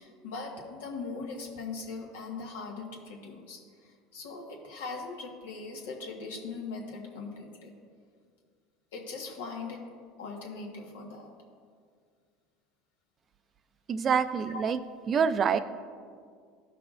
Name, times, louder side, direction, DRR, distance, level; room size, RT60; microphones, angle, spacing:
voice 1, 0.0-7.7 8.9-9.8 10.2-11.3 14.5-14.6 15.5-15.6, left 4 dB, 90° left, 0 dB, 1.4 m, -40 dB
voice 2, 13.9-14.8 15.1-15.6, right 6 dB, 35° right, 12 dB, 0.4 m, -26 dB
14.0 x 5.8 x 2.5 m, 2.1 s
supercardioid pair, 100°, 0 cm